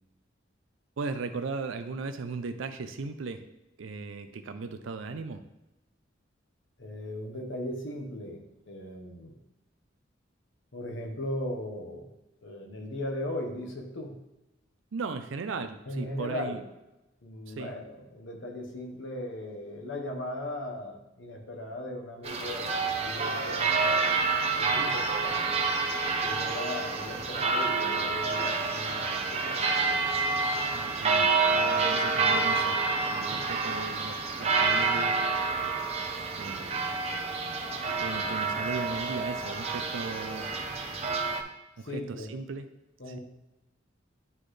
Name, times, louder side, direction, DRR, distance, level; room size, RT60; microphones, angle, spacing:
voice 1, 1.0-3.4 3.8-5.4 14.9-16.6 17.5-17.7 30.7-32.8 33.0-35.2 36.3-36.8 38.0-40.5 41.8-42.7 43.0-43.2, right 4 dB, 85° right, 9 dB, 0.5 m, -37 dB
voice 2, 6.8-9.3 10.7-12.1 12.4-14.2 15.9-16.6 17.2-24.1 24.5-25.4 26.2-29.6 41.8-42.3 43.0-43.2, left 1 dB, 75° left, 2 dB, 1.2 m, -38 dB
sound 1, 22.2-41.4, right 4 dB, 35° right, 0.8 m, -28 dB
10.5 x 4.1 x 3.3 m, 0.95 s
head